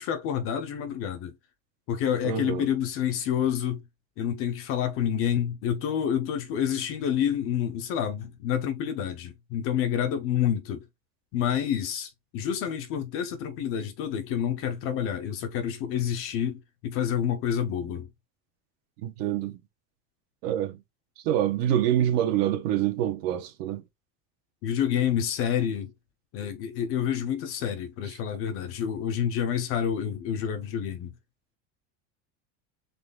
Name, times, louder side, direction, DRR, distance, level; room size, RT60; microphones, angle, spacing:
voice 1, 0.0-1.3 1.9-3.8 4.2-10.8 11.3-18.1 24.6-25.9 26.3-31.1, left 9 dB, 30° left, 0.4 m, -28 dB
voice 2, 2.2-2.7 19.0-19.6 20.4-20.8 21.2-23.8, right 11 dB, 80° right, 1.2 m, -26 dB
4.0 x 3.4 x 3.6 m
cardioid pair, 175°, 47 cm